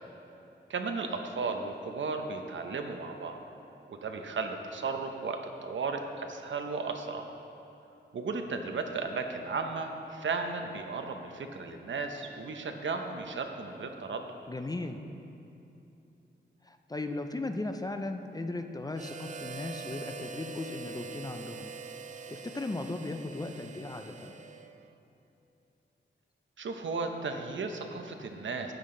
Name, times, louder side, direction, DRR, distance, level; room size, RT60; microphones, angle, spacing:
voice 1, 0.7-3.4 3.9-7.2 8.1-14.2 26.6-28.7, right 4 dB, 75° right, 5 dB, 0.8 m, -35 dB
voice 2, 14.5-15.0 16.6-21.7 22.3-24.4, left 2 dB, 20° left, 6 dB, 0.5 m, -37 dB
Harmonica, 18.9-25.0, right 4 dB, 40° right, 0.4 m, -44 dB
12.5 x 8.3 x 3.8 m, 2.8 s
wide cardioid pair, 115°, 20 cm